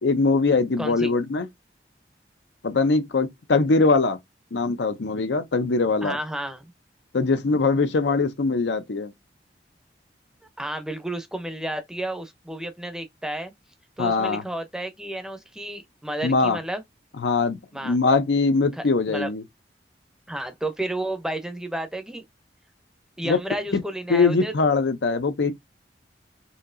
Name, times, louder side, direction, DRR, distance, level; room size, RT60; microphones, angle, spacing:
voice 1, 0.0-1.5 2.6-4.2 4.5-6.2 7.1-9.1 14.0-14.4 16.2-16.6 17.2-17.6 17.8-19.4 23.2-23.4 23.7-23.8 24.1-25.5, left 3 dB, 85° left, 0.6 m, -22 dB
voice 2, 0.8-1.2 6.0-6.7 10.6-13.5 14.0-16.8 17.7-18.0 18.8-19.3 20.3-22.2 23.2-24.5, right 1 dB, 5° right, 0.6 m, -32 dB
4.3 x 2.7 x 2.5 m
head